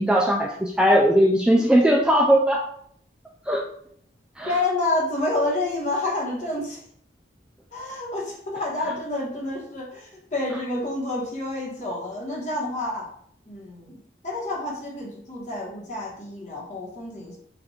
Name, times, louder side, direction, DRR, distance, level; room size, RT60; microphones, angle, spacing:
voice 1, 0.0-2.6 3.5-3.6 4.4-4.5, equal, 5° right, 0 dB, 0.3 m, -19 dB
voice 2, 4.4-6.8 7.7-13.1 13.5-17.4, left 2 dB, 40° left, -2 dB, 1.2 m, -29 dB
4.2 x 2.5 x 4.2 m, 0.65 s
head